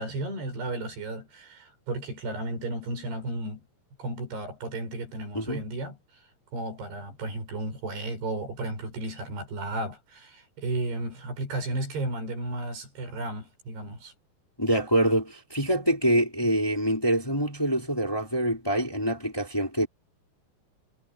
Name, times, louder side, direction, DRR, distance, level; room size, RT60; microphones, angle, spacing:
voice 1, 0.0-3.6 4.0-6.0 6.5-14.1, right 2 dB, 70° right, 10.0 m, -34 dB
voice 2, 14.6-19.9, right 1 dB, 5° left, 5.0 m, -25 dB
omnidirectional pair, 4.9 m